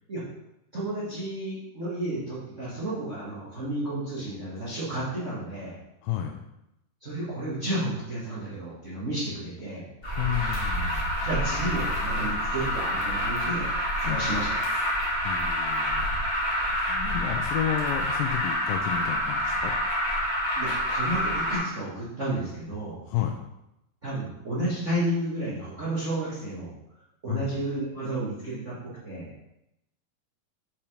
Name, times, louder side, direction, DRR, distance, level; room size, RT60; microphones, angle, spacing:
voice 1, 0.7-5.7 7.0-9.9 11.2-13.7 14.0-14.6 20.6-23.0 24.0-26.7 27.2-29.3, right 1 dB, 30° right, -7 dB, 1.4 m, -32 dB
voice 2, 6.0-6.4 10.2-11.1 14.1-14.2 15.2-16.1 16.9-19.7 23.1-23.4 27.3-27.5, left 11 dB, 85° left, 3 dB, 2.4 m, -31 dB
Alarm, 10.0-21.6, equal, 20° left, 1.8 m, -27 dB
6.9 x 5.7 x 5.0 m, 0.85 s
omnidirectional pair, 3.9 m